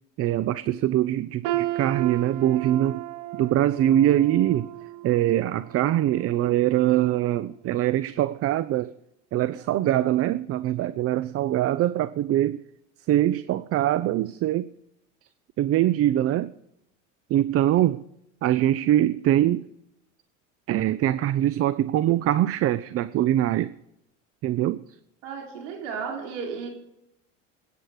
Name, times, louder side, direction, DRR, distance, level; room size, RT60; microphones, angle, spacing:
voice 1, 0.2-3.0 3.4-4.7 5.0-8.9 9.3-12.6 13.1-14.7 15.6-16.5 17.3-18.0 18.4-19.6 20.7-23.7 24.4-24.8, right 13 dB, 40° right, 0.6 m, -23 dB
sound 1, 1.4-7.4 7.8-8.0 8.8-8.9, right 16 dB, 60° right, 1.2 m, -35 dB
voice 2, 25.2-26.7, right 6 dB, 85° right, 3.7 m, -33 dB
21.0 x 9.3 x 4.9 m
supercardioid pair, 105°, 36 cm